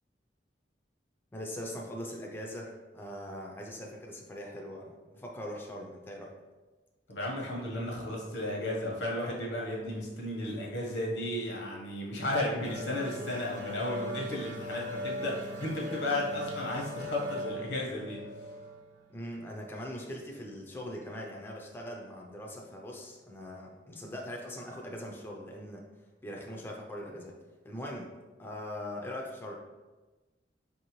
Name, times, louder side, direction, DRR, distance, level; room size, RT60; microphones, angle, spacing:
voice 1, 1.3-6.3 19.1-25.8 26.2-27.3 27.6-28.1 28.4-29.6, equal, 10° left, -1 dB, 0.4 m, -41 dB
voice 2, 7.1-18.3, left 1 dB, 85° left, -2 dB, 0.9 m, -34 dB
sound 1, 12.6-19.9, equal, 90° right, 0.6 m, -39 dB
4.2 x 2.7 x 2.9 m, 1.2 s
head